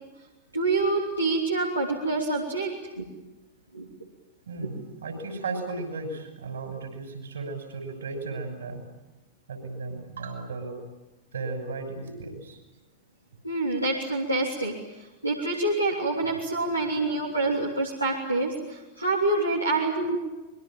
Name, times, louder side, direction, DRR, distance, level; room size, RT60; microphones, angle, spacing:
voice 1, 0.5-2.7 3.0-3.1 3.7-3.9 4.6-4.7 13.4-20.2, right 2 dB, 85° right, -3 dB, 3.1 m, -27 dB
voice 2, 4.5-8.8 9.5-10.8 11.3-12.6 16.2-16.4 16.9-17.1, right 3 dB, 65° right, 6 dB, 6.3 m, -35 dB
26.0 x 22.5 x 9.0 m, 1.1 s
figure-of-eight pair, 90°, 0 cm